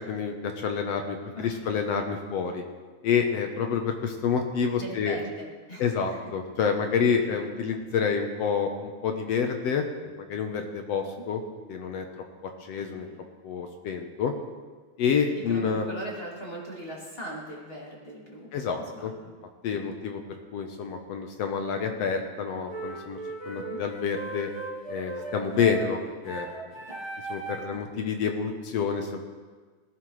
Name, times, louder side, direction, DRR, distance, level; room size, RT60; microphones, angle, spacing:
voice 1, 0.1-2.6 3.0-5.2 5.8-9.9 10.3-11.4 11.7-12.1 12.4-13.1 13.4-14.3 15.0-15.9 18.5-19.1 19.6-20.2 20.5-23.2 23.5-24.5 24.9-26.0 26.3-26.5 27.3-29.2, left 6 dB, 65° left, 4 dB, 1.9 m, -28 dB
voice 2, 4.8-6.3 7.0-7.1 13.0-13.2 15.3-19.3 23.6-23.8 26.9-27.0 27.6-27.8, right 1 dB, 20° left, -4 dB, 2.8 m, -40 dB
sound 1, 22.7-27.8, right 3 dB, 35° right, 0.4 m, -37 dB
19.0 x 15.0 x 3.3 m, 1.4 s
omnidirectional pair, 3.4 m